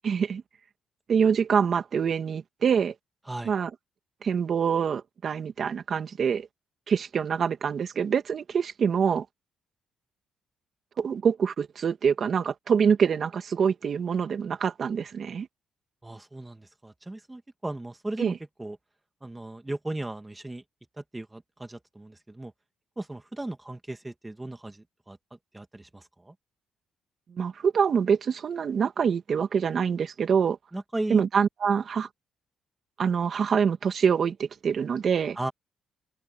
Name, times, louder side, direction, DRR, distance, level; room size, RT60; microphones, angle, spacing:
voice 1, 0.0-0.4 1.1-2.9 3.4-3.7 4.2-6.5 6.9-9.3 11.0-15.5 18.2-18.3 27.4-30.6 31.1-32.1 33.0-35.4, right 6 dB, 50° right, 2.4 m, -25 dB
voice 2, 16.0-18.8 19.2-20.6 21.0-22.5 23.0-25.2 25.5-26.3 30.7-31.2 35.4-35.5, right 2 dB, 15° right, 2.6 m, -36 dB
open air
cardioid pair, 90°, 0 cm